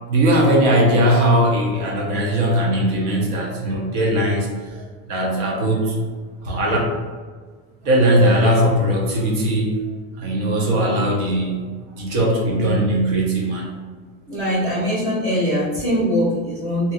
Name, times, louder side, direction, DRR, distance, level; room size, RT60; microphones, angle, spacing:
voice 1, 0.1-6.0 6.4-6.8 7.8-9.8 10.2-13.7, right 1 dB, 70° right, -1 dB, 0.9 m, -19 dB
voice 2, 14.3-16.9, equal, 35° right, -6 dB, 1.1 m, -22 dB
2.7 x 2.6 x 2.5 m, 1.5 s
cardioid pair, 170°, 39 cm